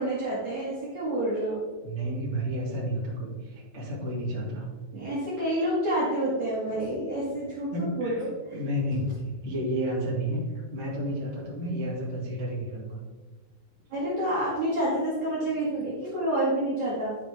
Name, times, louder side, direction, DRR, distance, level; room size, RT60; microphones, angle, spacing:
voice 1, 0.0-1.6 4.9-8.3 13.9-17.2, right 1 dB, 55° right, -8 dB, 2.0 m, -28 dB
voice 2, 1.8-4.7 7.7-8.3 8.5-13.0, equal, 30° right, -6 dB, 1.2 m, -31 dB
11.0 x 5.6 x 3.4 m, 1.3 s
omnidirectional pair, 5.7 m